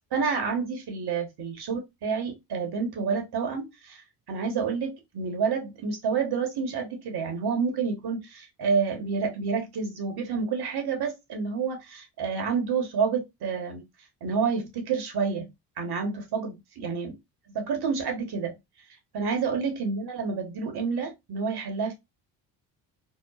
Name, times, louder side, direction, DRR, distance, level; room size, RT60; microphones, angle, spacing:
voice 1, 0.1-13.8 14.2-15.5 15.8-17.2 17.5-18.5 19.1-21.9, right 5 dB, 55° right, 1.1 m, -29 dB
2.9 x 2.0 x 2.3 m
supercardioid pair, 60°, 47 cm